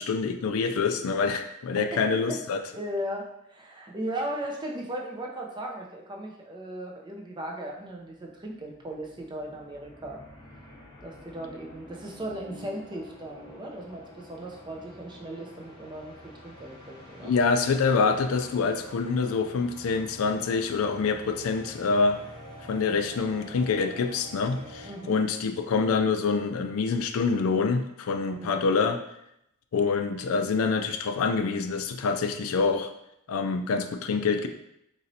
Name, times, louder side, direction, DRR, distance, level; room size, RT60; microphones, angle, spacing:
voice 1, 0.0-2.6 17.2-22.2 22.7-29.0 29.7-32.9 33.3-34.5, left 4 dB, 80° left, 6 dB, 0.4 m, -26 dB
voice 2, 1.8-2.4 2.7-10.2 11.0-17.3 24.8-25.2 28.2-28.6, right 1 dB, 20° right, 0 dB, 0.5 m, -37 dB
sound 1, 7.8-7.9 8.1-25.5, left 1 dB, 20° left, 0.7 m, -48 dB
4.1 x 3.0 x 2.6 m, 0.79 s
head